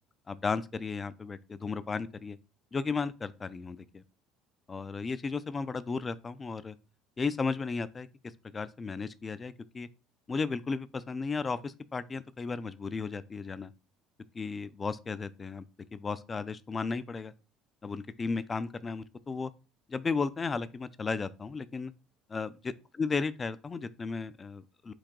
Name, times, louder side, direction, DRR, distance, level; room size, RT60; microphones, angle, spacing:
voice 1, 0.3-2.4 2.7-4.0 4.7-6.8 7.2-8.1 8.5-9.9 10.3-13.7 14.3-15.6 15.9-17.3 17.8-19.5 19.9-21.9 22.3-24.9, left 4 dB, 20° left, 0.3 m, -34 dB
4.6 x 2.6 x 3.7 m
cardioid pair, 125°, 0 cm